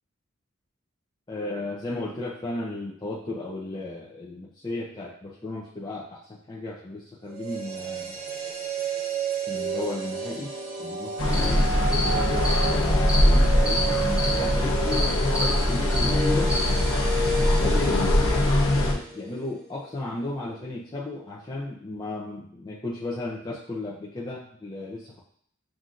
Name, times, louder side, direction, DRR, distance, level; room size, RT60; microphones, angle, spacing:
voice 1, 1.3-8.2 9.5-10.5 10.8-12.3 12.7-16.5 17.3-25.2, left 2 dB, 20° left, -5 dB, 0.5 m, -35 dB
sound 1, 7.3-19.4 19.7-19.8, right 3 dB, 45° right, 0.7 m, -32 dB
sound 2, 11.2-18.9, left 1 dB, 75° left, 0.8 m, -22 dB
sound 3, 11.3-11.5 11.9-12.1 12.4-12.7 13.1-13.2 13.7-13.8 14.2-14.3 14.9-15.1 15.3-15.5 15.9-16.1 16.5-16.7, left 1 dB, 5° right, 0.9 m, -28 dB
7.2 x 2.6 x 2.5 m, 0.63 s
head